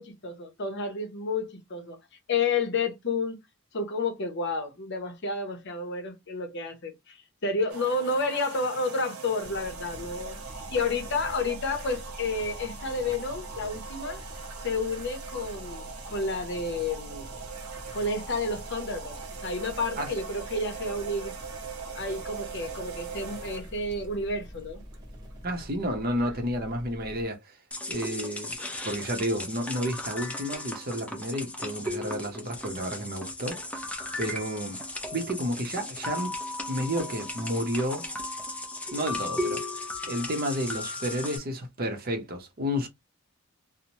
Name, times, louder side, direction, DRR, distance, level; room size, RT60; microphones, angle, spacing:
voice 1, 0.0-2.0 2.3-3.4 3.7-10.4 10.7-14.2 14.6-17.3 17.9-21.3 21.9-24.8, left 3 dB, 55° left, 0.7 m, -30 dB
sound 1, 7.7-25.4, right 5 dB, 90° right, 0.8 m, -42 dB
sound 2, 9.4-27.3, equal, 20° right, 0.9 m, -45 dB
voice 2, 25.4-27.6 27.9-28.6 28.8-34.8 35.1-36.3 36.7-38.1 38.9-42.9, equal, 45° right, 0.7 m, -31 dB
sound 3, 27.7-41.4, left 2 dB, 5° left, 0.4 m, -36 dB
2.7 x 2.0 x 2.9 m
head